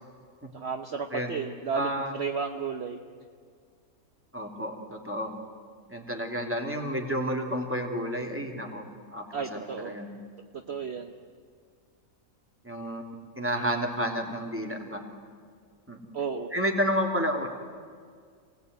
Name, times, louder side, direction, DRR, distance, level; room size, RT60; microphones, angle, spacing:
voice 1, 0.5-3.0 9.3-9.9 10.7-11.1 16.1-16.5, right 5 dB, 50° right, 5 dB, 1.2 m, -33 dB
voice 2, 1.7-2.1 4.3-5.3 5.9-10.1 12.6-13.1 13.4-15.0 15.9-16.1 16.5-17.5, equal, 10° right, 2 dB, 2.9 m, -31 dB
27.5 x 18.5 x 9.5 m, 2.1 s
omnidirectional pair, 1.5 m